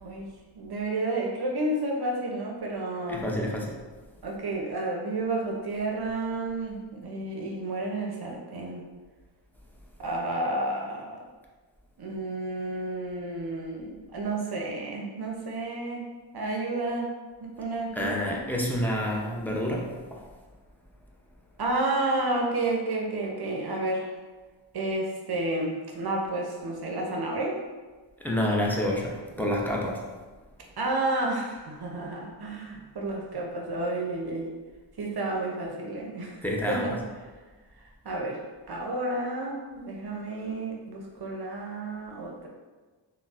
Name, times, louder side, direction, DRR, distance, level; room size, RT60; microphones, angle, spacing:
voice 1, 0.0-3.2 4.2-8.8 10.0-11.2 12.0-16.1 16.3-17.1 17.4-18.4 21.6-24.1 24.7-27.6 30.8-34.5 35.0-36.9 38.0-38.4 38.7-42.5, right 2 dB, 55° right, 0 dB, 0.5 m, -31 dB
voice 2, 3.1-3.8 17.9-20.3 28.2-30.1 36.4-37.0, left 1 dB, 5° left, -3 dB, 0.5 m, -28 dB
3.8 x 2.0 x 2.3 m, 1.3 s
cardioid pair, 65°, 46 cm